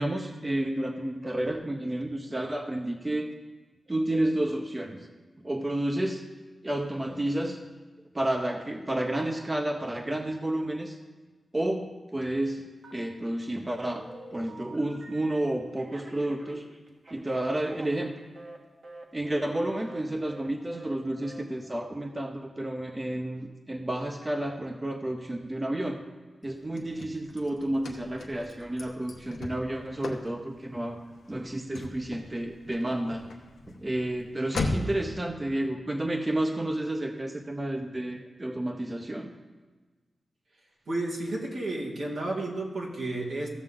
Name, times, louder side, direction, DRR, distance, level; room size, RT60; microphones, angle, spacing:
voice 1, 0.0-3.3 3.9-5.1 5.4-6.2 6.6-7.6 8.1-11.0 11.5-16.6 17.1-18.1 19.1-26.0 26.4-31.0 31.3-33.3 33.8-39.3, right 1 dB, 25° right, 4 dB, 0.9 m, -31 dB
Telephone, 12.8-13.4 13.8-15.4 15.8-18.6 18.8-19.1 19.3-19.5 19.8-20.0 20.3-20.5 20.7-21.0 21.2-21.4, right 1 dB, 60° right, 1.7 m, -46 dB
Car / Slam, 26.4-35.1, left 2 dB, 85° left, 0.9 m, -38 dB
voice 2, 40.9-43.5, right 2 dB, 85° right, -5 dB, 2.3 m, -32 dB
15.5 x 6.5 x 3.7 m, 1.3 s
cardioid pair, 60°, 0 cm